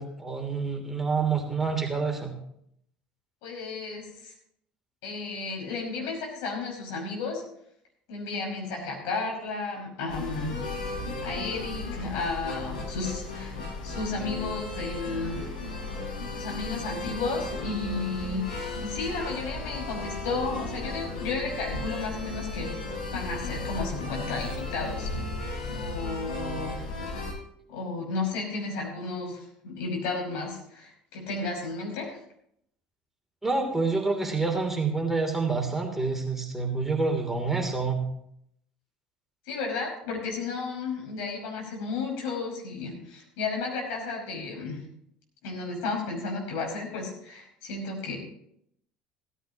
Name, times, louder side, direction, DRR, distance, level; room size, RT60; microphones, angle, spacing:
voice 1, 0.0-2.3 33.4-38.0, right 4 dB, 5° right, 1 dB, 3.0 m, -27 dB
voice 2, 3.4-4.3 5.0-7.4 8.1-10.6 10.9-11.0 11.2-13.5 13.8-15.5 16.3-22.8 23.1-25.1 25.7-26.9 27.1-27.3 27.7-32.2 39.5-44.8 45.4-48.2, left 3 dB, 65° left, 0 dB, 5.4 m, -33 dB
sound 1, 10.1-27.3, left 2 dB, 80° left, 4.3 m, -35 dB
16.0 x 14.5 x 2.9 m, 0.72 s
figure-of-eight pair, 65°, 4 cm